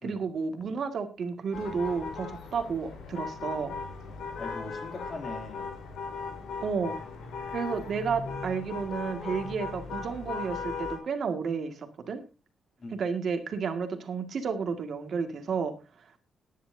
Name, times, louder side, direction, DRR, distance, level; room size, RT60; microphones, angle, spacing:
voice 1, 0.0-3.7 6.6-7.0 7.5-12.2 13.0-16.2, right 5 dB, 50° right, 1.9 m, -32 dB
sound 1, 1.5-11.0, left 4 dB, 85° left, 3.8 m, -38 dB
voice 2, 4.4-5.7 12.8-13.0, left 2 dB, 40° left, 2.8 m, -41 dB
19.0 x 10.0 x 2.7 m
cardioid pair, 145°, 0 cm